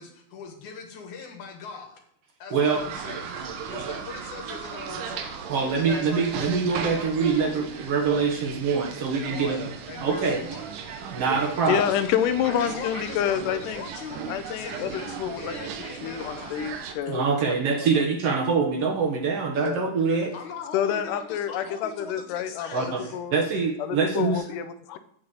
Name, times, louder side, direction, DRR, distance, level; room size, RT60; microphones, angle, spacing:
voice 1, 0.0-2.0 2.4-5.5 9.3-10.6 11.7-12.0 12.4-16.6 20.3-23.2, left 5 dB, 70° left, 4 dB, 3.0 m, -41 dB
sound 1, 2.7-16.9, right 6 dB, 80° right, 2.7 m, -36 dB
voice 2, 5.5-9.6 10.0-10.4 11.1-11.8 17.1-20.3 22.7-24.4, right 5 dB, 60° right, 3 dB, 1.8 m, -24 dB
voice 3, 11.6-13.8 14.3-15.6 16.0-17.6 19.6-19.8 20.7-23.3 23.8-25.0, left 9 dB, 90° left, 11 dB, 2.3 m, -28 dB
8.2 x 5.9 x 7.9 m, 0.66 s
omnidirectional pair, 3.6 m